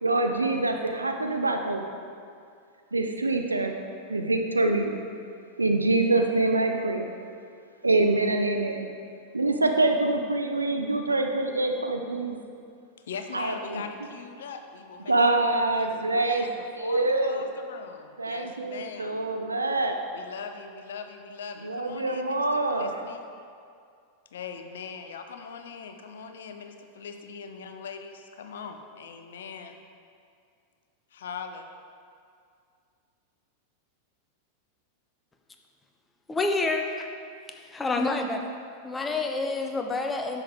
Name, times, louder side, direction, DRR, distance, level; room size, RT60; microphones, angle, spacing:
voice 1, 0.0-1.8 2.9-3.7 4.1-5.0 5.6-7.1 7.8-8.9 9.3-12.4 13.3-13.8 15.1-16.5 16.8-17.4 18.2-20.0 21.6-23.0, right 2 dB, 80° right, 4 dB, 0.6 m, -25 dB
voice 2, 13.1-19.2 20.1-23.2 24.3-29.8 31.1-31.6, left 5 dB, 60° left, 6 dB, 0.7 m, -41 dB
voice 3, 36.3-37.1 37.7-38.5 38.8-40.4, left 3 dB, 15° left, 4 dB, 0.7 m, -28 dB
10.0 x 7.0 x 3.5 m, 2.3 s
figure-of-eight pair, 90°, 0 cm